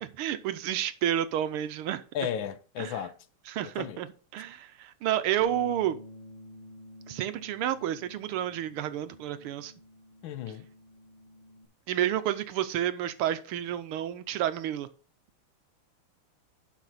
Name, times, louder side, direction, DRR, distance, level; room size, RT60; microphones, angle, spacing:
voice 1, 0.0-2.0 2.8-3.0 3.5-4.1 4.3-6.0 7.1-9.7 11.9-14.9, right 11 dB, 85° right, 1.7 m, -30 dB
voice 2, 2.1-3.2 3.6-4.0 10.2-10.7, left 9 dB, 70° left, 1.4 m, -34 dB
Bass guitar, 5.4-11.7, left 1 dB, 25° left, 1.2 m, -50 dB
11.5 x 5.3 x 4.1 m
omnidirectional pair, 2.4 m